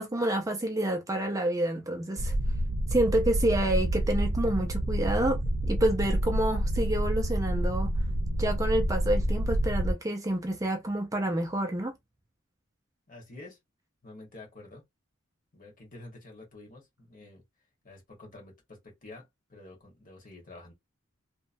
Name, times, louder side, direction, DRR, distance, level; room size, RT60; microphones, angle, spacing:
voice 1, 0.0-2.3 2.9-7.9 8.4-11.9, right 1 dB, 15° right, 0.4 m, -28 dB
sound 1, 2.2-9.9, right 1 dB, 85° right, 0.6 m, -28 dB
voice 2, 13.1-13.6 14.0-14.8 15.5-17.4 17.8-20.7, left 2 dB, 40° left, 1.3 m, -49 dB
2.9 x 2.1 x 2.5 m
head